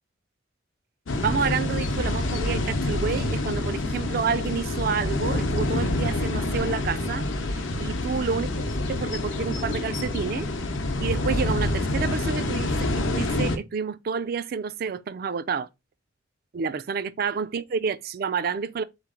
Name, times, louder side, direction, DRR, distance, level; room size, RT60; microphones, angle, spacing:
sound 1, 1.1-13.6, left 2 dB, 75° left, 0.7 m, -27 dB
voice 1, 1.2-7.3 7.5-8.5 8.9-10.5 11.0-15.7 16.5-18.8, right 5 dB, 50° right, 0.3 m, -29 dB
4.1 x 3.0 x 3.7 m
head